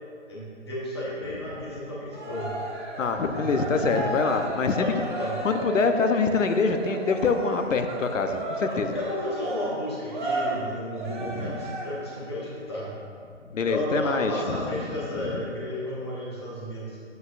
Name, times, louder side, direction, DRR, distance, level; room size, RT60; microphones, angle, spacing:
voice 1, 0.3-2.5 3.3-3.6 4.8-5.4 8.9-12.9 13.6-17.0, left 1 dB, 20° left, -6 dB, 0.9 m, -33 dB
Cheering, 2.1-12.2, right 2 dB, 40° right, 1.1 m, -34 dB
voice 2, 3.0-4.9 5.4-9.0 11.4-11.6 13.5-14.7 15.1-15.4, left 4 dB, 90° left, 7 dB, 0.8 m, -25 dB
7.9 x 7.8 x 2.5 m, 2.3 s
hypercardioid pair, 175°, 37 cm